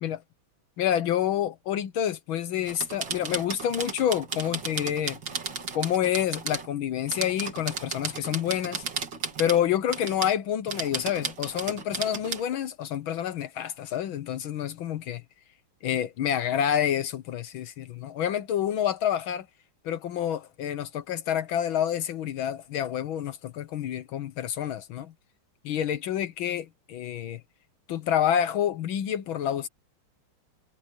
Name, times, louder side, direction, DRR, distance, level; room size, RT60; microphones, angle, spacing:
voice 1, 0.8-5.2 5.7-8.8 9.4-15.2 15.8-19.5 19.8-25.1 25.6-27.4 27.9-29.7, left 10 dB, 75° left, 1.7 m, -28 dB
sound 1, 2.7-6.7 7.1-9.6 9.9-10.4 10.7-12.4, right 5 dB, 60° right, 3.0 m, -34 dB
omnidirectional pair, 2.3 m